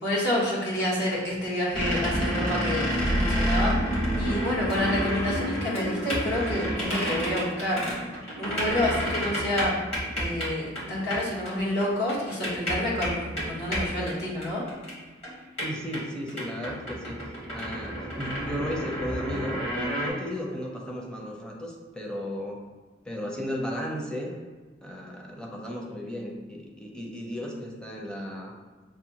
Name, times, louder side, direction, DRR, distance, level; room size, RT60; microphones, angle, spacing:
voice 1, 0.0-3.9 4.2-7.8 8.4-9.7 10.2-14.6, left 1 dB, 65° left, -6 dB, 1.4 m, -28 dB
sound 1, 1.7-10.5 10.8-10.9 11.1-11.2 11.5-11.6 11.8-14.9 15.2-15.3 15.6-20.1, equal, 35° left, 1.3 m, -29 dB
voice 2, 15.6-17.2 17.5-22.6 23.0-24.4 24.8-28.5, equal, 5° left, -2 dB, 0.6 m, -35 dB
6.2 x 2.2 x 2.9 m, 1.3 s
head